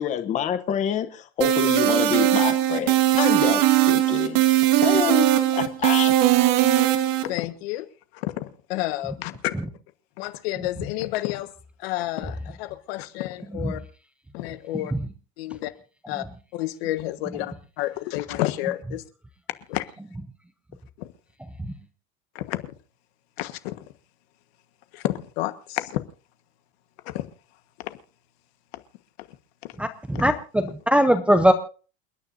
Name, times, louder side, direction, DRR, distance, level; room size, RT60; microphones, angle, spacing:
voice 1, 0.0-4.4 4.8-5.3 5.5-6.1, left 9 dB, 25° left, 9 dB, 0.9 m, -27 dB
sound 1, 1.4-7.2, right 14 dB, 65° right, 1.6 m, -19 dB
voice 2, 7.2-7.9 8.1-9.6 10.2-11.5 11.8-13.8 14.3-14.9 15.4-15.7 16.1-16.3 16.5-19.0 19.7-19.8 21.0-21.1 22.3-22.6 23.4-23.8 24.9-26.0 27.0-27.2 27.8-28.0 28.7-28.8, left 16 dB, 75° left, 10 dB, 1.5 m, -30 dB
voice 3, 29.8-31.5, equal, 5° right, 6 dB, 0.6 m, -20 dB
29.0 x 9.9 x 2.7 m, 0.37 s
cardioid pair, 170°, 31 cm